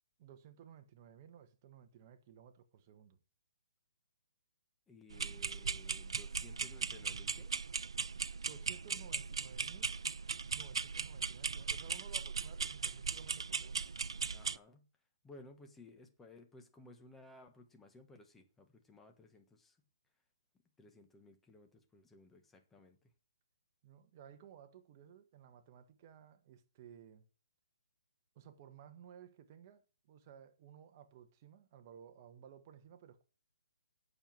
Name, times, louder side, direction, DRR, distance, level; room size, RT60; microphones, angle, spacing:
voice 1, 0.2-3.2 8.4-9.9 10.5-13.8 23.8-27.3 28.3-33.2, right 9 dB, 30° right, 1.4 m, -57 dB
voice 2, 4.9-7.5 14.3-14.9 15.2-19.8 20.8-23.1, left 2 dB, 5° left, 1.3 m, -58 dB
sound 1, 5.1-14.6, right 5 dB, 85° right, 0.5 m, -39 dB
8.9 x 6.8 x 7.6 m
hypercardioid pair, 165°, 3 cm